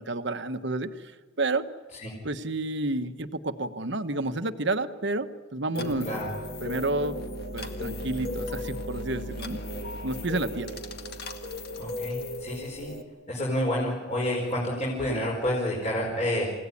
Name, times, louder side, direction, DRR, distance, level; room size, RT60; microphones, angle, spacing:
voice 1, 0.0-1.6 2.2-5.3 5.5-6.1 6.6-7.2 7.5-9.6 10.0-10.7, right 2 dB, 60° right, 9 dB, 1.2 m, -30 dB
sound 1, 5.7-13.0, left 1 dB, 50° left, 1.9 m, -35 dB
voice 2, 11.8-12.9 13.3-16.4, left 1 dB, 35° left, -3 dB, 4.9 m, -29 dB
29.0 x 17.0 x 9.9 m, 1.4 s
head